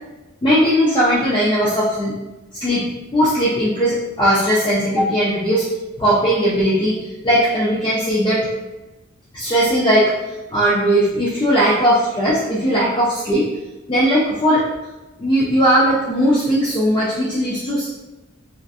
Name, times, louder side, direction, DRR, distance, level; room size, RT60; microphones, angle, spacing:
voice 1, 0.4-2.1 2.6-2.9 3.1-5.7 6.0-7.0 7.2-8.5 9.3-10.1 10.5-13.5 13.9-14.7 15.2-17.9, equal, 25° left, -8 dB, 0.4 m, -18 dB
2.5 x 2.4 x 2.4 m, 1.1 s
head